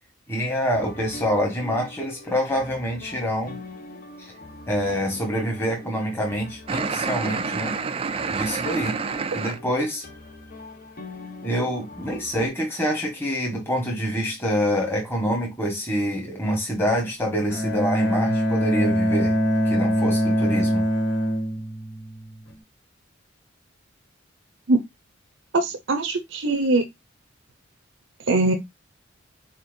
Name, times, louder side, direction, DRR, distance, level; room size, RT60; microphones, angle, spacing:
voice 1, 0.3-3.6 4.7-7.7 8.3-9.0 9.3-10.0 11.4-19.4 19.6-20.8, equal, 10° left, 1.4 m, -26 dB
sound 1, 0.7-12.5, left 1 dB, 45° left, 1.0 m, -42 dB
sound 2, 6.7-9.6, right 5 dB, 30° right, 0.3 m, -28 dB
Bowed string instrument, 17.5-22.5, equal, 65° left, 2.3 m, -23 dB
voice 2, 25.5-26.8 28.3-28.5, right 2 dB, 75° right, 0.7 m, -21 dB
4.3 x 4.3 x 2.6 m
head